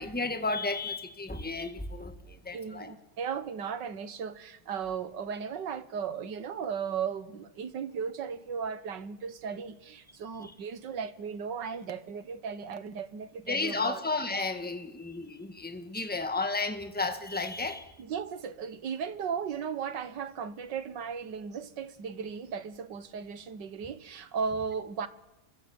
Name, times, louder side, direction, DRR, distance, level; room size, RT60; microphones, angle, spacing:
voice 1, 0.0-2.9 10.4-10.5 13.5-18.0, left 3 dB, 5° left, 1.6 m, -33 dB
voice 2, 2.5-14.0 18.0-25.1, right 6 dB, 85° right, 2.0 m, -36 dB
26.5 x 22.5 x 8.8 m
omnidirectional pair, 1.9 m